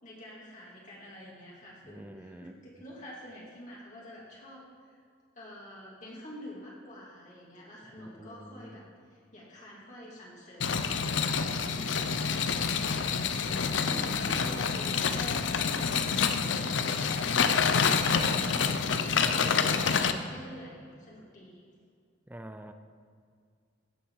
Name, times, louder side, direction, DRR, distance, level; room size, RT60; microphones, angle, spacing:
voice 1, 0.0-5.0 5.3-8.8 9.1-12.4 14.1-18.7 19.2-21.7, left 1 dB, 45° left, -5 dB, 2.4 m, -47 dB
voice 2, 1.8-2.5 8.0-8.7 11.7-12.1 13.9-14.5 22.3-22.7, right 1 dB, 10° right, 8 dB, 0.5 m, -46 dB
sound 1, 10.6-20.1, left 6 dB, 85° left, 0.6 m, -27 dB
16.5 x 6.9 x 4.7 m, 2.2 s
head